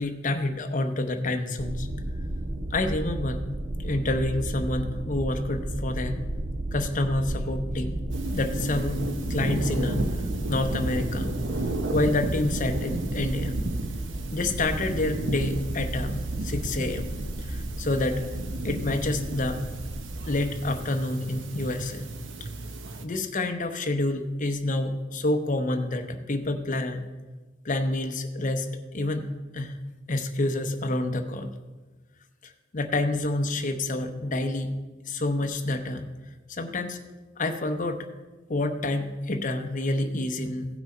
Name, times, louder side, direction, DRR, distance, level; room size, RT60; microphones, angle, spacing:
voice 1, 0.0-1.9 2.7-3.4 3.8-6.2 6.7-8.0 8.3-9.0 9.3-10.0 10.5-11.3 11.9-13.6 14.3-17.1 17.5-18.2 18.6-19.6 20.2-22.1 23.0-27.0 27.6-29.2 29.5-29.8 30.1-31.5 32.7-34.7 35.1-36.1 36.5-37.0 37.4-38.0 38.5-40.7, left 2 dB, 40° left, 6 dB, 0.8 m, -28 dB
sound 1, 1.6-20.8, right 1 dB, 30° right, 0.6 m, -34 dB
sound 2, 8.1-23.1, right 2 dB, 75° right, 0.8 m, -33 dB
16.0 x 6.1 x 4.3 m, 1.2 s
head